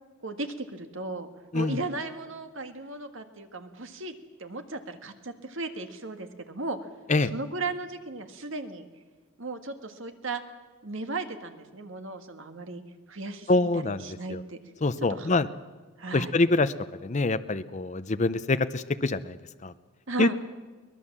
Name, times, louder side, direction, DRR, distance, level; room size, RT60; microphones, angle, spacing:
voice 1, 0.2-1.3 1.5-6.9 7.3-8.9 9.4-10.4 10.8-12.8 13.1-14.6 15.1-15.3 16.0-16.3 20.1-20.3, right 3 dB, 60° right, 7 dB, 1.7 m, -36 dB
voice 2, 13.5-14.4 14.8-15.5 16.1-16.7 17.0-19.7 20.2-20.3, left 2 dB, 35° left, 11 dB, 0.6 m, -25 dB
22.5 x 19.5 x 7.3 m, 1.3 s
head